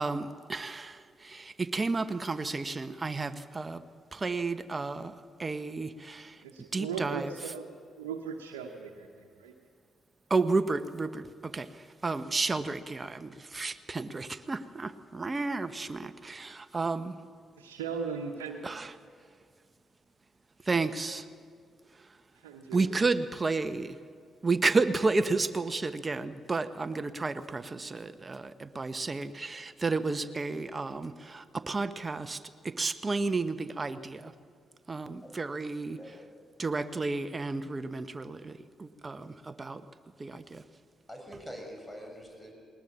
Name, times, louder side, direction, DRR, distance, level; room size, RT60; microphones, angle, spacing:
voice 1, 0.0-3.8 4.1-6.4 6.7-7.4 10.3-17.2 18.6-18.9 20.6-21.3 21.9-22.2 22.7-24.0 24.4-34.3 34.9-36.2 36.6-39.9 40.2-40.6, right 3 dB, 30° right, 11 dB, 1.0 m, -32 dB
voice 2, 6.4-7.7 8.0-9.5 17.6-18.8 22.4-22.9, right 6 dB, 85° right, 1 dB, 1.1 m, -38 dB
voice 3, 36.0-36.3 41.1-42.5, equal, 15° left, 2 dB, 6.1 m, -44 dB
20.0 x 19.5 x 7.4 m, 2.1 s
hypercardioid pair, 45°, 0 cm